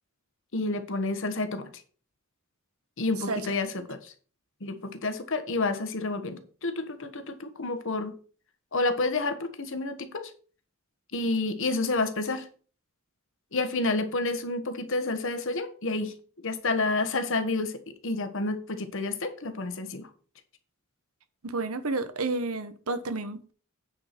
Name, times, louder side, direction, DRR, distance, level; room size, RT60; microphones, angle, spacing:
voice 1, 0.5-1.7 3.0-4.1 4.6-8.2 8.7-10.3 11.1-12.5 13.5-16.1 16.4-20.1, left 2 dB, 65° left, 1.3 m, -29 dB
voice 2, 21.4-23.5, right 3 dB, 85° right, 1.1 m, -31 dB
9.2 x 4.8 x 5.9 m
head